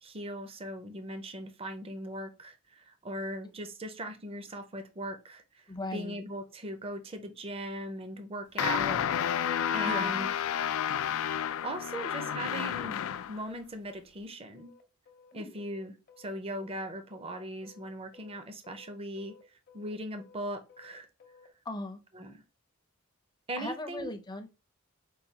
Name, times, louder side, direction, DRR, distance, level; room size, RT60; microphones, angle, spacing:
voice 1, 0.0-9.0 9.7-10.3 11.6-13.0 13.3-14.7 15.3-19.3 19.7-21.1 22.2-22.3 23.5-24.1, right 1 dB, 30° right, 0.5 m, -39 dB
voice 2, 5.7-6.2 9.8-10.2 15.3-15.6 21.6-22.0 23.6-24.5, left 1 dB, 20° left, 0.5 m, -38 dB
sound 1, 8.6-13.4, left 9 dB, 75° left, 0.3 m, -31 dB
sound 2, 14.5-21.5, left 4 dB, 50° left, 0.7 m, -57 dB
4.7 x 2.3 x 2.7 m
head